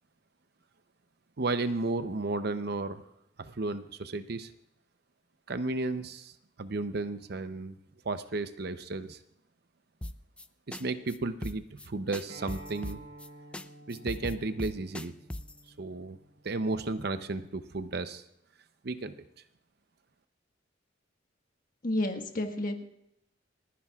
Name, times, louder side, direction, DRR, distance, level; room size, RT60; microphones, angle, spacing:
voice 1, 1.4-3.0 3.4-4.5 5.5-6.3 6.6-7.8 8.0-9.2 10.7-13.0 13.9-15.1 15.8-16.2 16.4-18.2 18.8-19.2, right 3 dB, 60° right, 11 dB, 0.7 m, -33 dB
sound 1, 10.0-10.5 10.7-10.8 11.1-11.2 11.4-11.9 12.1-13.3 13.5-13.6 13.9-15.6, left 1 dB, 5° left, 0.4 m, -38 dB
Acoustic guitar, 12.3-17.5, right 1 dB, 90° right, 5.1 m, -51 dB
voice 2, 21.8-22.8, left 1 dB, 50° left, 5 dB, 1.5 m, -31 dB
29.5 x 10.0 x 2.4 m, 0.82 s
head